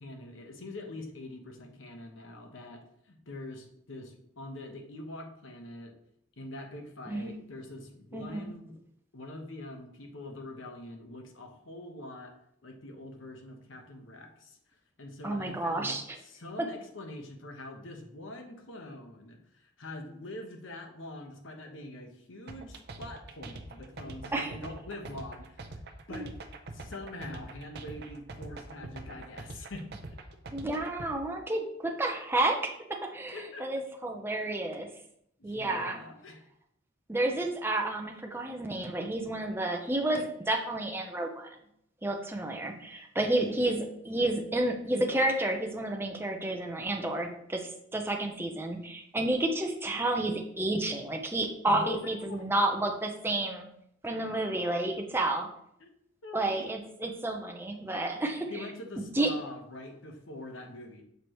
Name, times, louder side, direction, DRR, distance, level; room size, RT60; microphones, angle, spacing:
voice 1, 0.0-5.9 6.4-8.8 9.1-12.3 12.6-25.6 26.1-26.3 26.7-29.8 33.3-33.7 35.4-36.5 51.7-52.4 55.8-55.9 56.2-56.7 58.5-61.0, left 1 dB, 85° left, 3 dB, 1.0 m, -44 dB
voice 2, 8.1-8.5 15.2-16.0 24.3-24.5 26.1-26.3 30.5-34.9 35.4-36.0 37.1-41.5 42.0-47.6 47.9-53.7 54.0-55.5 56.3-58.5 59.0-59.3, right 2 dB, 10° right, 2 dB, 0.6 m, -30 dB
sound 1, 22.5-31.1, right 2 dB, 55° right, 0.6 m, -44 dB
6.8 x 4.7 x 3.0 m, 0.73 s
head